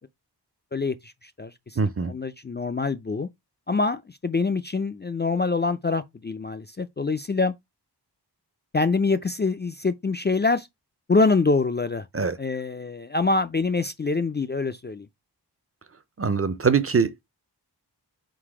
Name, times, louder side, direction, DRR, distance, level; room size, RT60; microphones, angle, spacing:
voice 1, 0.7-1.8 2.0-3.3 3.7-7.5 8.7-10.7 11.1-12.1 12.4-15.1, left 3 dB, 25° left, 0.4 m, -25 dB
voice 2, 1.8-2.1 12.1-12.4 16.2-17.2, right 5 dB, 35° right, 0.5 m, -23 dB
3.9 x 2.6 x 4.7 m
wide cardioid pair, 60°, 42 cm